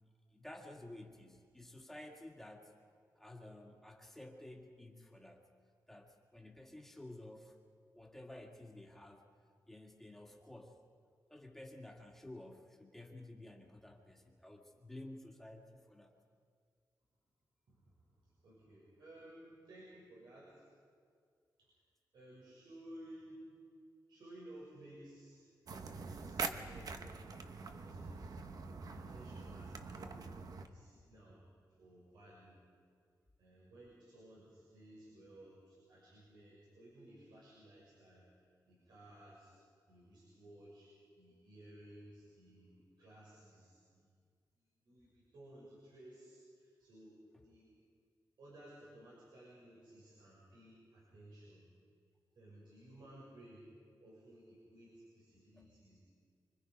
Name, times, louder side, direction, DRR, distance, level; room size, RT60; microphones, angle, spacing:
voice 1, 0.3-2.8 3.2-5.5 5.9-7.6 7.9-9.3 9.7-10.8 11.3-16.2 47.3-47.5 55.5-55.7, left 1 dB, 5° left, 1 dB, 2.1 m, -53 dB
voice 2, 17.7-20.7 21.6-21.7 22.1-23.6 24.1-25.5 25.9-28.3 28.9-30.3 30.6-31.4 31.8-32.6 33.4-38.2 38.6-39.5 39.9-40.9 41.1-44.1 44.8-47.2 47.4-47.7 48.4-51.6 52.3-53.7 54.0-56.0, right 1 dB, 80° right, -6 dB, 6.5 m, -57 dB
sound 1, 25.7-30.7, right 4 dB, 55° right, 1.2 m, -44 dB
26.0 x 25.0 x 5.3 m, 2.1 s
wide cardioid pair, 160°, 8 cm